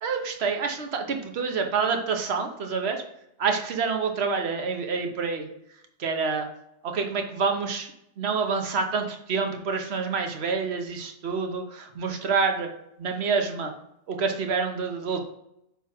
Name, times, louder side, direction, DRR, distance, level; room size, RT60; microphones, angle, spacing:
voice 1, 0.0-3.0 3.4-5.5 6.0-6.5 6.8-7.9 8.2-12.7 13.0-13.7 14.1-15.2, right 5 dB, 45° right, 4 dB, 1.2 m, -27 dB
9.3 x 3.5 x 6.0 m, 0.79 s
omnidirectional pair, 1.8 m